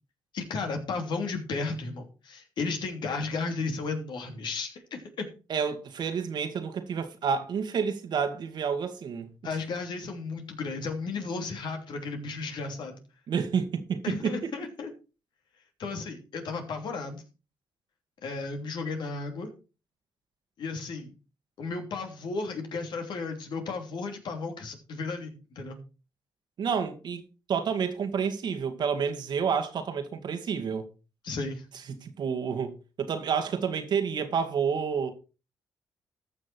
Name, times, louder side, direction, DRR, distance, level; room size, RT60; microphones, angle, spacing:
voice 1, 0.3-5.3 9.4-13.0 14.0-14.9 15.8-17.2 18.2-19.5 20.6-21.1 21.6-25.8 31.2-31.7, left 4 dB, 65° left, 3.1 m, -34 dB
voice 2, 5.5-9.3 13.3-14.5 26.6-27.2 27.5-30.9 32.0-35.1, right 6 dB, 60° right, 2.0 m, -29 dB
14.0 x 6.3 x 4.5 m
supercardioid pair, 65°, 8 cm